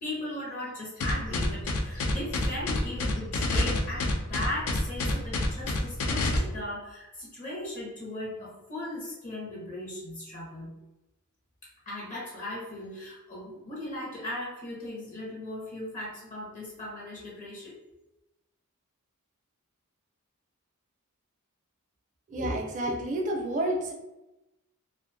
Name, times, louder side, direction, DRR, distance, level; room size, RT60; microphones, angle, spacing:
voice 1, 0.0-10.7 11.9-17.8, left 1 dB, 35° left, -5 dB, 0.6 m, -37 dB
sound 1, 1.0-6.4, left 3 dB, 75° left, 0.4 m, -28 dB
voice 2, 22.3-23.9, right 1 dB, 35° right, 0 dB, 0.4 m, -29 dB
2.4 x 2.1 x 2.5 m, 0.96 s
head